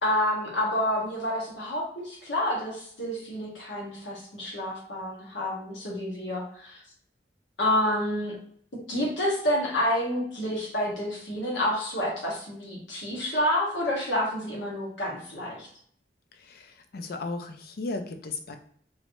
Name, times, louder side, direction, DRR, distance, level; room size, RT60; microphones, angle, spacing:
voice 1, 0.0-6.8 7.6-8.4 8.9-15.7, left 1 dB, 85° left, -3 dB, 1.2 m, -29 dB
voice 2, 16.3-18.6, left 3 dB, 60° left, 7 dB, 0.5 m, -35 dB
3.1 x 3.1 x 2.6 m, 0.62 s
head